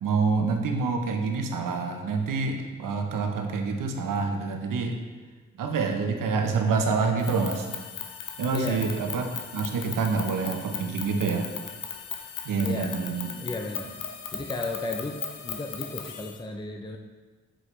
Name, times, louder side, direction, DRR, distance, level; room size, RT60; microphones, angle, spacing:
voice 1, 0.0-4.9 5.6-7.7 8.4-11.5 12.5-13.3, right 4 dB, 75° right, 4 dB, 0.9 m, -27 dB
sound 1, 7.2-16.4, left 8 dB, 80° left, 0.7 m, -38 dB
voice 2, 8.5-8.9 12.6-13.1 13.4-13.9 14.3-17.0, left 2 dB, 15° left, 4 dB, 0.5 m, -34 dB
7.6 x 4.8 x 3.3 m, 1.4 s
supercardioid pair, 45°, 33 cm